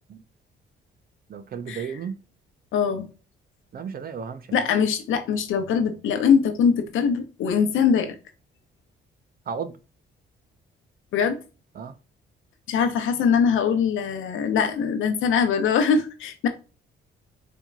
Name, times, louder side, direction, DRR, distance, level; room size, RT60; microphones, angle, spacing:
voice 1, 1.3-2.2 3.7-4.7 9.5-9.8 11.7-11.9, right 6 dB, 50° right, 0.6 m, -34 dB
voice 2, 2.7-3.1 4.5-8.2 11.1-11.4 12.7-16.5, left 6 dB, 80° left, 0.9 m, -22 dB
4.3 x 2.8 x 2.3 m
cardioid pair, 90°, 20 cm